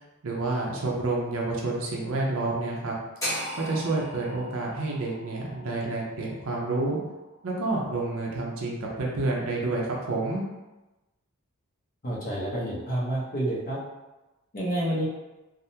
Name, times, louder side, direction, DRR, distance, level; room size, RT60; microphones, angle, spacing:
voice 1, 0.2-3.0 3.6-7.0 7.4-10.4, right 2 dB, 65° right, -2 dB, 0.6 m, -29 dB
sound 1, 3.2-7.3, equal, 15° left, 1.0 m, -37 dB
voice 2, 12.0-13.8 14.5-15.0, right 1 dB, 40° left, -5 dB, 0.8 m, -29 dB
3.5 x 2.1 x 2.7 m, 1.1 s
head